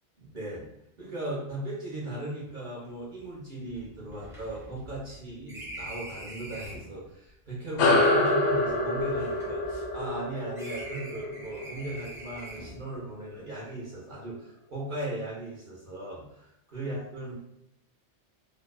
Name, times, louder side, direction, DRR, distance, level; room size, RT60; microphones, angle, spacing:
voice 1, 0.2-0.6 1.0-17.3, right 1 dB, 50° right, -5 dB, 0.8 m, -37 dB
sound 1, 2.8-2.9 3.2-3.3 3.7-7.0 7.8-10.2 10.5-12.9, right 1 dB, 5° right, 0.4 m, -44 dB
sound 2, 7.8-12.6, left 2 dB, 80° left, 0.9 m, -26 dB
2.6 x 2.1 x 2.2 m, 0.80 s
omnidirectional pair, 1.2 m